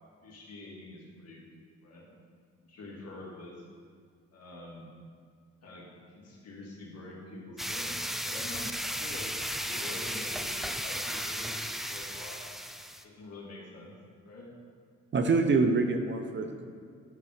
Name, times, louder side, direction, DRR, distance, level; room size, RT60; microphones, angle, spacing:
voice 1, 0.2-1.5 1.8-2.1 2.6-3.7 4.3-4.9 5.6-12.5 13.0-14.0 14.2-14.5, left 2 dB, 55° left, -4 dB, 2.3 m, -46 dB
sound 1, 7.6-13.0, equal, ahead, 0.4 m, -35 dB
voice 2, 15.1-16.7, right 4 dB, 40° right, 6 dB, 0.6 m, -26 dB
10.5 x 4.1 x 4.9 m, 2.1 s
cardioid pair, 90°, 30 cm